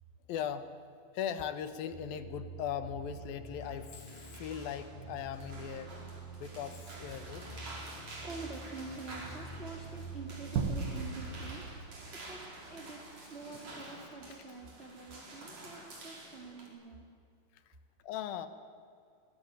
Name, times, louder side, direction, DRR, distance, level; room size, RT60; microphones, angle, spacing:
voice 1, 0.3-0.7 1.1-4.0 4.3-5.9 6.3-7.4 13.5-13.6 17.5-17.6 18.0-18.5, left 9 dB, 75° left, 11 dB, 3.0 m, -39 dB
sound 1, 1.9-11.6, right 4 dB, 10° left, 2.8 m, -47 dB
sound 2, 3.6-16.7, right 2 dB, 45° right, 5.6 m, -49 dB
voice 2, 8.0-17.1, right 3 dB, 20° right, 3 dB, 1.9 m, -47 dB
sound 3, 10.6-13.1, right 5 dB, 75° right, 3.5 m, -37 dB
25.0 x 20.0 x 9.5 m, 2.3 s
omnidirectional pair, 4.3 m